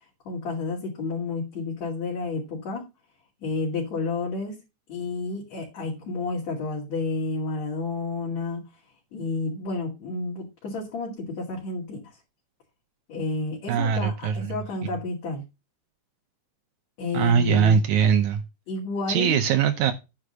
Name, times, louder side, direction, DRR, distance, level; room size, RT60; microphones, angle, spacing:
voice 1, 0.3-2.8 3.4-4.6 4.9-8.6 9.1-12.1 13.1-15.4 17.0-17.8 18.7-19.4, left 3 dB, 65° left, 3.7 m, -30 dB
voice 2, 13.7-14.5 17.1-18.4 19.1-19.9, right 7 dB, 80° right, 2.2 m, -21 dB
9.6 x 3.9 x 6.5 m
omnidirectional pair, 3.5 m